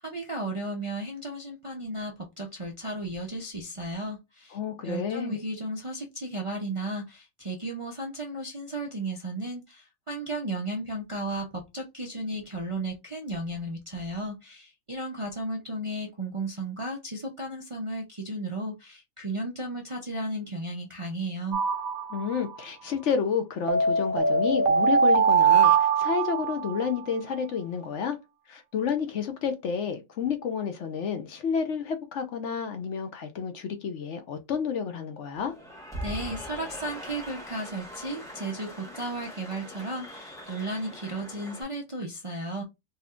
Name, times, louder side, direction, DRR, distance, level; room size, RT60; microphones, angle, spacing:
voice 1, 0.0-4.6 4.8-21.6 36.0-42.6, right 1 dB, 35° right, 0.5 m, -34 dB
voice 2, 4.5-5.4 22.1-28.2 28.5-35.5, left 6 dB, 65° left, 1.0 m, -30 dB
sound 1, 21.5-22.6 23.7-26.9, right 5 dB, 80° right, 1.1 m, -22 dB
Cheering / Applause, 35.3-41.6, equal, 5° left, 1.1 m, -41 dB
4.2 x 2.8 x 2.4 m
omnidirectional pair, 1.4 m